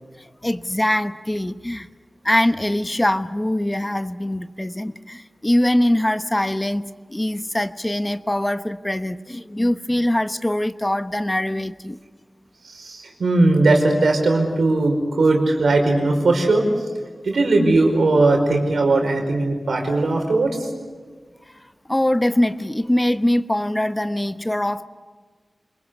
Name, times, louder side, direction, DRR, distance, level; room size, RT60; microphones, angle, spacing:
voice 1, 0.2-1.9 2.2-12.0 21.9-24.8, left 1 dB, 15° left, 11 dB, 1.0 m, -22 dB
voice 2, 12.6-16.7 17.2-20.7, right 2 dB, 90° right, 3 dB, 5.2 m, -18 dB
28.0 x 21.5 x 8.3 m, 1.5 s
cardioid pair, 55°, 0 cm